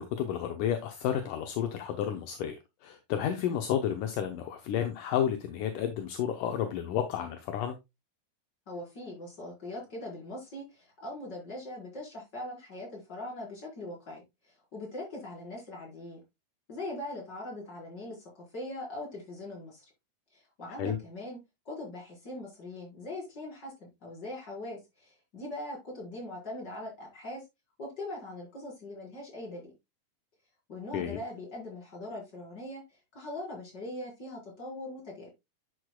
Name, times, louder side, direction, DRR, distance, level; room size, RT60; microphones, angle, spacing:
voice 1, 0.0-7.8 20.8-21.0 30.9-31.2, left 9 dB, 75° left, 2.3 m, -31 dB
voice 2, 8.7-14.2 14.7-16.2 16.7-19.8 20.3-21.4 21.6-27.4 27.8-29.7 30.7-35.3, left 1 dB, 30° left, 5.1 m, -41 dB
11.0 x 6.5 x 2.3 m
omnidirectional pair, 4.0 m